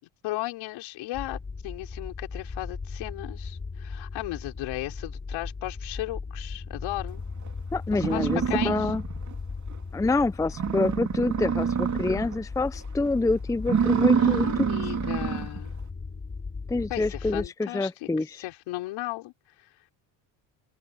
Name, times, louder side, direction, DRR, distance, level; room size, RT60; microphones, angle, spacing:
voice 1, 0.2-7.2 7.9-8.9 14.1-15.8 16.9-19.3 19.6-19.7, left 18 dB, 75° left, 4.7 m, -36 dB
sound 1, 1.1-17.5, left 4 dB, 25° left, 3.2 m, -37 dB
sound 2, 7.5-7.6 7.9-9.3 9.7-9.8 10.2-10.3 10.5-12.4 12.8-13.1 13.6-15.6, right 7 dB, 35° right, 2.9 m, -26 dB
voice 2, 7.7-9.0 9.9-14.9 16.7-18.4, left 3 dB, 5° left, 0.6 m, -27 dB
open air
supercardioid pair, 90°, 48 cm